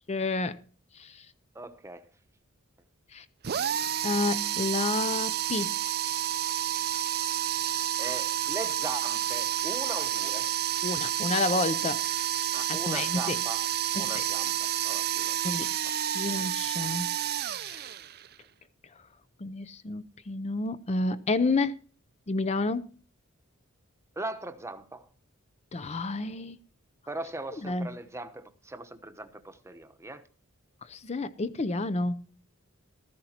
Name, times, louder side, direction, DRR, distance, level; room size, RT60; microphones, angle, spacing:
voice 1, 0.1-0.6 0.9-1.3 3.1-3.3 4.0-5.7 10.8-12.0 12.7-13.4 13.9-14.1 15.4-15.7 16.1-17.1 17.5-17.9 19.4-21.8 22.3-22.9 25.7-26.6 27.6-27.9 30.8-32.3, left 3 dB, 30° left, 0.5 m, -30 dB
voice 2, 1.5-2.1 8.0-10.5 12.5-13.7 13.9-15.4 15.8-15.9 24.2-25.1 27.1-30.2, right 2 dB, 15° right, 0.9 m, -40 dB
sound 1, 3.4-18.3, right 11 dB, 50° right, 0.5 m, -30 dB
15.0 x 13.0 x 2.9 m
head